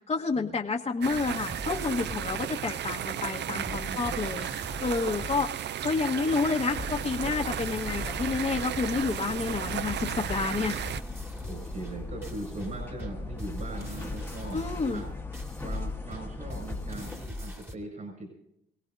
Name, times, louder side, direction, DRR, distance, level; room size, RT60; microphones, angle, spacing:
voice 1, 0.1-5.5 5.8-10.7 14.5-15.0, left 4 dB, 35° left, -2 dB, 1.5 m, -29 dB
sound 1, 1.0-11.0, right 10 dB, 60° right, 0.6 m, -34 dB
sound 2, 1.1-2.4 2.9-3.0 3.6-5.5 6.0-6.2 6.8-8.7 9.1-9.3 9.9-17.8, left 1 dB, 10° right, 2.4 m, -41 dB
voice 2, 3.4-4.2 11.4-15.1 15.6-18.3, right 2 dB, 45° right, 1 dB, 7.1 m, -40 dB
sound 3, 6.7-17.3, left 3 dB, 10° left, 1.6 m, -39 dB
27.5 x 17.5 x 2.7 m, 0.77 s
cardioid pair, 90°, 20 cm